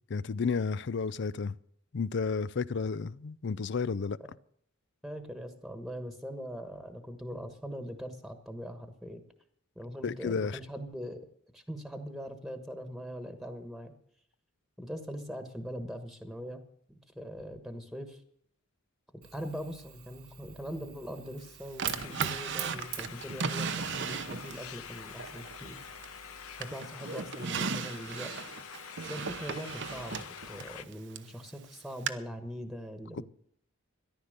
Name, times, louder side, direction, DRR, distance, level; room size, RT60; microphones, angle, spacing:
voice 1, 0.1-1.6 1.9-4.2 10.0-10.6, left 5 dB, 55° left, 0.5 m, -32 dB
voice 2, 5.0-9.2 9.7-11.3 11.5-13.9 14.8-16.6 16.9-18.2 19.3-25.8 26.6-28.3 29.0-33.3, equal, ahead, 1.3 m, -41 dB
Fire, 19.2-26.7, right 10 dB, 85° right, 1.8 m, -46 dB
sound 1, 21.8-30.8, left 8 dB, 80° left, 0.9 m, -46 dB
Drawer open or close, 21.8-24.7 25.2-26.3 26.6-31.3 32.1-32.2, right 6 dB, 55° right, 0.8 m, -36 dB
14.0 x 11.0 x 6.6 m
head